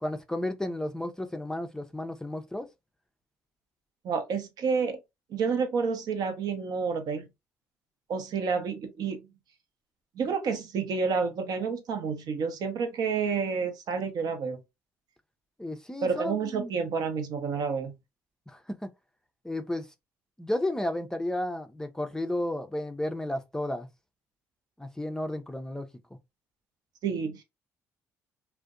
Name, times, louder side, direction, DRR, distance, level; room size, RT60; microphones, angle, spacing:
voice 1, 0.0-2.7 15.6-16.7 18.5-18.9 19.4-19.9 20.4-23.9 24.8-25.9, left 1 dB, 10° left, 0.5 m, -32 dB
voice 2, 4.0-5.0 5.3-7.3 8.1-9.2 10.2-14.6 16.0-17.9 27.0-27.4, right 5 dB, 60° right, 0.7 m, -29 dB
2.5 x 2.1 x 2.4 m
hypercardioid pair, 55°, 7 cm